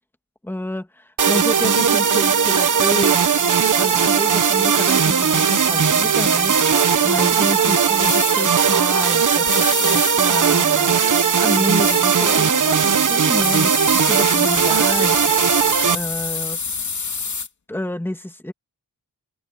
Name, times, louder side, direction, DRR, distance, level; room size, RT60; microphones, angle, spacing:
voice 1, 0.4-3.2 3.7-11.0 11.3-15.4 15.9-16.6 17.7-18.5, left 1 dB, 5° left, 2.3 m, -29 dB
sound 1, 1.2-16.0, right 7 dB, 55° right, 1.3 m, -18 dB
sound 2, 8.0-8.4 9.5-10.2 11.8-12.0 13.4-17.5, left 5 dB, 50° left, 2.8 m, -27 dB
wide cardioid pair, 140°, 36 cm